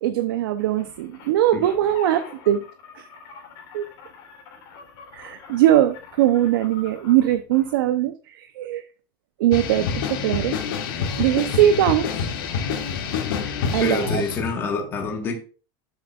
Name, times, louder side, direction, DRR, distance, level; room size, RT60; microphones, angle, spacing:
voice 1, 0.0-2.6 2.9-3.1 3.7-3.8 5.1-8.8 9.4-10.6 11.2-12.1 13.7-14.2, right 12 dB, 70° right, 0.7 m, -21 dB
sound 1, 0.6-7.8, left 6 dB, 40° left, 3.4 m, -44 dB
sound 2, 9.5-14.5, left 6 dB, 70° left, 2.3 m, -27 dB
voice 2, 13.8-15.3, left 4 dB, 20° left, 1.5 m, -26 dB
11.5 x 7.3 x 2.4 m
supercardioid pair, 175°, 12 cm